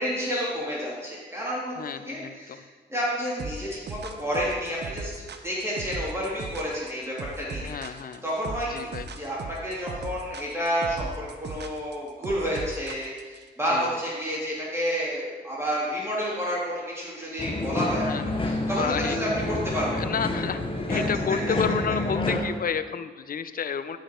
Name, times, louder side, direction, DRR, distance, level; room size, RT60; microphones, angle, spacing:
voice 1, 0.0-1.8 2.1-2.6 2.9-20.0 20.9-21.0, equal, 15° right, -7 dB, 2.6 m, -30 dB
voice 2, 1.8-2.6 7.6-8.2 8.7-9.1 13.7-14.0 18.0-18.2 18.6-19.2 20.0-20.6 20.9-24.0, left 6 dB, 45° left, 12 dB, 0.6 m, -31 dB
sound 1, 3.4-13.4, right 4 dB, 55° right, 0.7 m, -37 dB
sound 2, 17.4-22.4, left 2 dB, 25° left, 1.1 m, -28 dB
8.9 x 5.1 x 4.4 m, 1.4 s
supercardioid pair, 55°, 20 cm